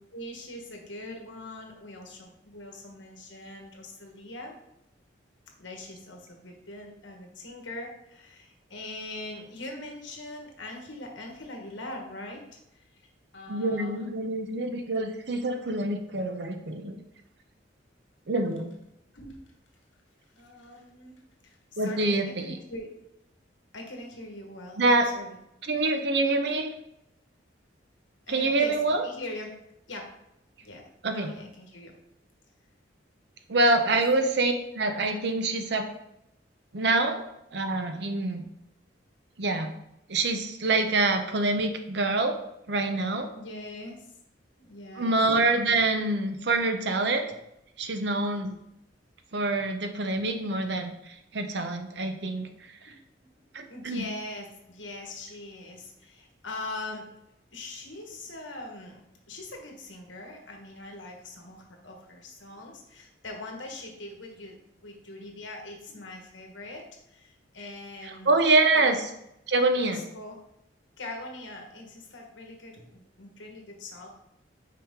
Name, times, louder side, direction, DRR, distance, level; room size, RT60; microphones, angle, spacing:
voice 1, 0.1-4.6 5.6-13.0 13.3-14.0 19.1-19.4 20.4-22.9 23.7-25.3 28.3-29.5 29.9-30.1 30.6-31.9 33.9-34.0 43.3-44.0 44.6-45.2 52.9-53.3 53.7-57.1 57.5-64.6 64.8-68.3 68.7-69.0 69.7-70.4 71.0-74.1, left 2 dB, 80° left, 2 dB, 1.4 m, -42 dB
voice 2, 13.5-17.0 18.3-18.7 21.8-22.6 24.8-25.1 25.6-26.7 28.3-29.0 31.0-31.3 33.5-35.8 36.7-37.2 37.5-38.4 39.4-39.7 40.1-42.4 42.7-43.3 45.0-47.2 47.8-48.5 49.3-52.5 52.8-52.9 53.5-54.0 68.0-69.1 69.5-70.0, right 2 dB, 60° right, 6 dB, 0.7 m, -26 dB
6.0 x 4.9 x 3.7 m, 0.82 s
head